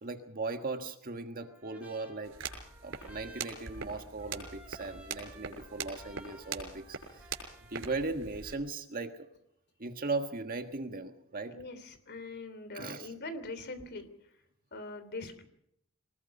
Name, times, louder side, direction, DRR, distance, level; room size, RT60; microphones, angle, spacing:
voice 1, 0.0-2.4 2.8-7.4 7.7-9.3 9.8-11.6 12.7-13.1, right 3 dB, 45° right, 6 dB, 1.6 m, -38 dB
Trumpet, 1.4-8.1, right 1 dB, 5° right, 6.4 m, -56 dB
sound 1, 2.2-8.5, right 5 dB, 65° right, 6.0 m, -43 dB
voice 2, 11.5-14.1 14.7-15.4, left 2 dB, 50° left, 10 dB, 3.1 m, -42 dB
24.0 x 20.0 x 5.4 m, 0.76 s
head